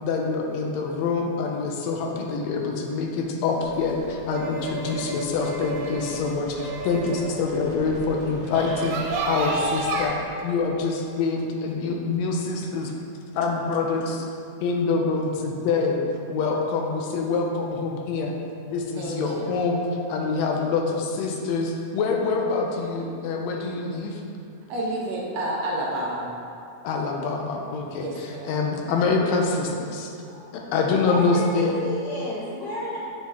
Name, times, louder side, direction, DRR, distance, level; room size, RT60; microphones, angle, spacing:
voice 1, 0.0-10.2 10.4-12.9 13.3-14.3 14.6-16.0 16.3-18.4 18.7-19.8 20.1-24.2 26.8-30.1 30.5-31.7, left 4 dB, 80° left, 1 dB, 1.7 m, -25 dB
sound 1, 3.6-10.1, right 3 dB, 85° right, 2.2 m, -32 dB
voice 2, 19.0-19.6 24.7-26.3 28.0-28.6, right 1 dB, 70° right, -3 dB, 1.8 m, -30 dB
voice 3, 30.2-33.0, left 1 dB, 60° left, -14 dB, 2.4 m, -33 dB
7.3 x 4.4 x 3.5 m, 2.6 s
omnidirectional pair, 3.4 m